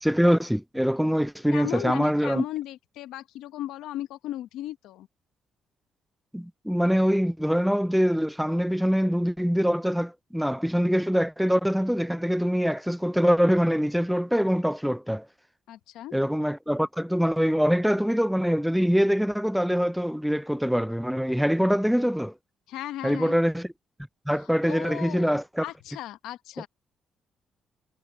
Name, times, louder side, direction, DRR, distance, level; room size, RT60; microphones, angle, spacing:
voice 1, 0.0-2.4 6.3-15.3 16.1-22.3 23.0-23.7 24.3-25.6, equal, ahead, 0.3 m, -24 dB
voice 2, 1.5-5.1 15.7-16.1 22.7-23.4 24.4-26.7, left 14 dB, 90° left, 0.9 m, -36 dB
cardioid pair, 90°, 0 cm